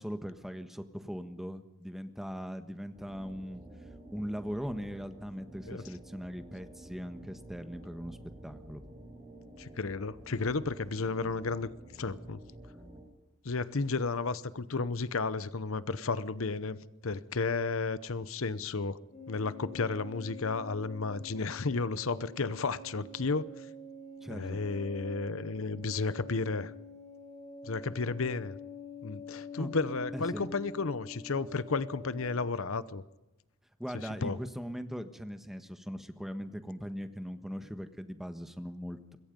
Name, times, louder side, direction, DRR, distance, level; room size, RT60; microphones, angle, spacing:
voice 1, 0.0-3.6 4.1-8.8 24.2-24.6 29.6-29.7 30.1-30.5 33.8-39.2, equal, ahead, 1.3 m, -40 dB
sound 1, 2.9-13.0, right 1 dB, 25° right, 5.6 m, -51 dB
voice 2, 9.6-11.7 12.0-12.4 13.4-16.8 17.0-19.0 19.3-23.7 24.3-26.7 27.6-28.6 29.0-33.0 34.2-34.4, left 4 dB, 65° left, 0.8 m, -33 dB
sound 2, 19.1-32.4, left 3 dB, 35° left, 6.5 m, -46 dB
25.5 x 22.0 x 5.3 m
head